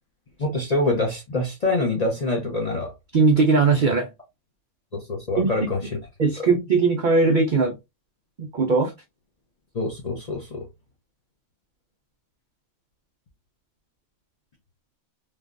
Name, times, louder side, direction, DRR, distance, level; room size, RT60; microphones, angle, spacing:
voice 1, 0.4-2.9 4.9-5.9 6.4-6.5 9.7-10.7, left 2 dB, 50° left, 0.5 m, -25 dB
voice 2, 3.1-4.1 5.4-5.5 6.2-7.7 8.4-8.9, right 4 dB, 85° right, 0.4 m, -19 dB
3.3 x 2.2 x 2.4 m
omnidirectional pair, 1.5 m